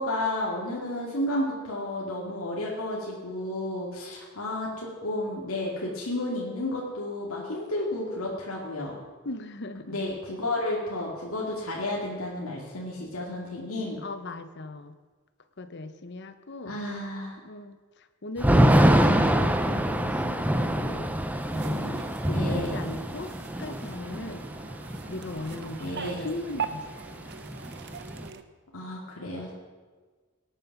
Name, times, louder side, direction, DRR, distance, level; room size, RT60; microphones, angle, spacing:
voice 1, 0.0-9.0 9.9-14.0 16.6-17.3 22.3-22.8 25.8-26.3 28.7-29.5, left 1 dB, 80° left, -3 dB, 2.3 m, -32 dB
voice 2, 9.2-10.1 14.0-14.9 15.6-16.9 17.4-21.1 21.5-23.3 23.6-24.5 25.1-26.8 27.2-27.3, left 2 dB, 50° left, 10 dB, 0.9 m, -39 dB
Thunder / Rain, 18.4-26.3 26.6-26.7 26.9-28.3, equal, 5° right, 0.6 m, -25 dB
sound 1, 21.3-28.4, right 6 dB, 50° right, 0.7 m, -41 dB
18.0 x 9.1 x 5.9 m, 1.4 s
head